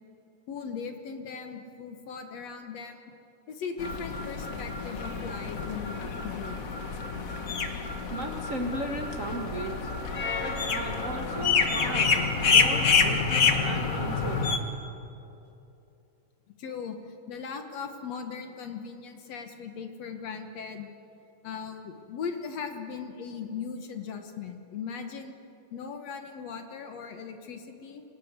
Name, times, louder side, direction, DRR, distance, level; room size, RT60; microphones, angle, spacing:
voice 1, 0.5-3.1 3.5-6.7 11.8-12.0 16.6-20.9 21.4-25.4 25.7-28.0, left 6 dB, 60° left, 6 dB, 2.1 m, -38 dB
sound 1, 3.8-14.6, left 5 dB, 90° left, 0.7 m, -27 dB
voice 2, 8.1-9.9 10.4-14.7, right 1 dB, 75° right, 2 dB, 0.7 m, -36 dB
25.5 x 19.0 x 8.2 m, 2.9 s
omnidirectional pair, 3.9 m